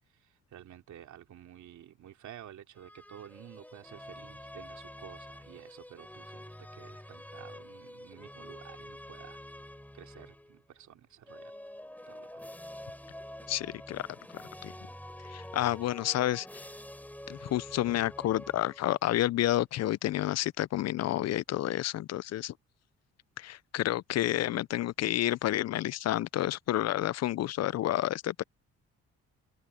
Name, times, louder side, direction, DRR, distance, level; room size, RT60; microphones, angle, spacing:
voice 1, 0.0-6.4 6.7-9.4 9.9-11.5 12.1-12.5, right 10 dB, 70° right, 3.0 m, -51 dB
sound 1, 2.7-10.6 11.2-19.1, left 1 dB, 5° left, 4.4 m, -47 dB
voice 2, 13.5-14.1 14.6-14.7 15.3-16.6 17.3-22.5 23.4-28.4, left 14 dB, 60° left, 0.5 m, -30 dB
cardioid pair, 90°, 30 cm